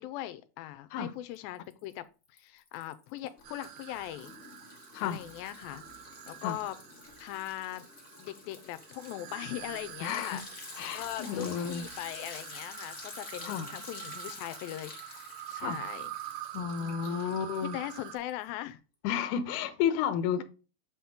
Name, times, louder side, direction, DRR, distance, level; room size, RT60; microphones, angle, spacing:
voice 1, 0.0-4.3 5.0-5.8 6.3-6.8 7.2-7.9 8.2-10.4 10.9-16.1 16.8-17.3 17.6-18.8 20.4-20.5, left 14 dB, 85° left, 2.4 m, -40 dB
Liquid, 1.3-1.9 2.3-18.4, left 4 dB, 50° left, 0.9 m, -49 dB
sound 1, 3.4-18.2, right 14 dB, 85° right, 1.8 m, -46 dB
voice 2, 10.0-10.4 10.8-11.8 13.4-13.7 15.6-15.8 16.5-17.8 19.0-20.4, left 8 dB, 70° left, 2.1 m, -32 dB
7.8 x 4.3 x 3.6 m
omnidirectional pair, 4.1 m